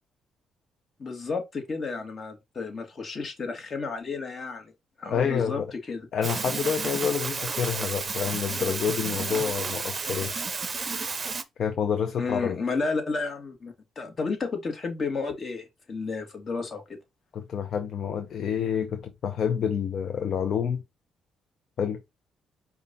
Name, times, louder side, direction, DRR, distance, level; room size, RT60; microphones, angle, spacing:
voice 1, 1.0-4.7 5.0-6.1 12.2-17.0, left 4 dB, 40° left, 1.6 m, -32 dB
voice 2, 5.1-5.7 6.1-10.3 11.6-12.6 17.3-20.8 21.8-22.0, left 7 dB, 60° left, 0.6 m, -28 dB
sound 1, 6.2-11.4, right 4 dB, 35° right, 0.6 m, -32 dB
5.1 x 2.4 x 4.0 m
cardioid pair, 90°, 0 cm